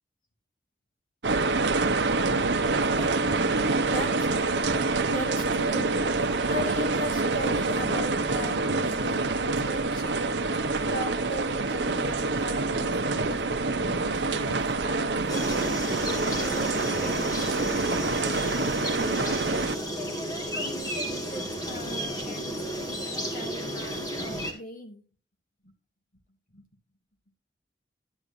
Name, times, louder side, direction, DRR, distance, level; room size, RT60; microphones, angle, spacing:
sound 1, 1.2-19.8, right 3 dB, 70° right, 0.8 m, -26 dB
voice 1, 2.3-5.9 6.5-10.3 10.8-15.8 16.4-19.4 20.0-25.0 25.6-25.7 26.5-26.7, left 1 dB, 50° left, 3 dB, 2.4 m, -39 dB
sound 2, 15.3-24.5, equal, 20° left, 1.9 m, -33 dB
11.0 x 9.7 x 2.7 m, 0.36 s
head